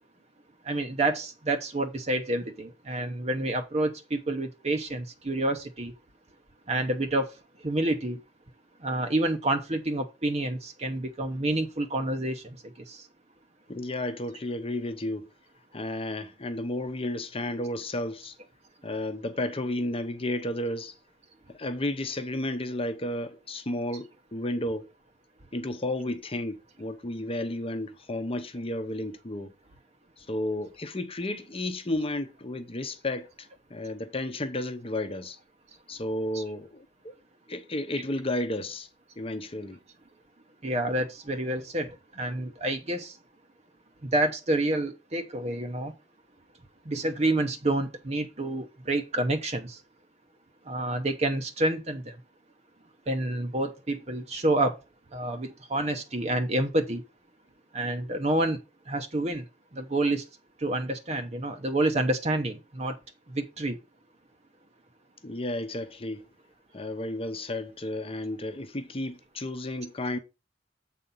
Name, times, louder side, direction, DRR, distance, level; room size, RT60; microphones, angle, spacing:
voice 1, 0.7-5.9 6.7-7.3 7.6-8.2 8.8-12.4 12.9-13.0 36.3-36.4 40.6-41.9 42.2-43.1 44.0-45.9 46.9-49.8 50.7-52.1 53.1-54.7 55.1-57.0 57.7-58.6 58.9-59.4 59.7-60.2 60.6-62.9 63.3-63.8, right 1 dB, 35° right, 0.9 m, -28 dB
voice 2, 13.7-15.3 15.7-18.3 18.8-20.9 21.5-24.9 25.5-29.5 30.2-35.4 35.9-37.1 37.5-38.9 39.2-39.8 65.2-66.2 66.7-70.2, left 1 dB, 30° left, 0.9 m, -32 dB
7.9 x 4.2 x 5.5 m
head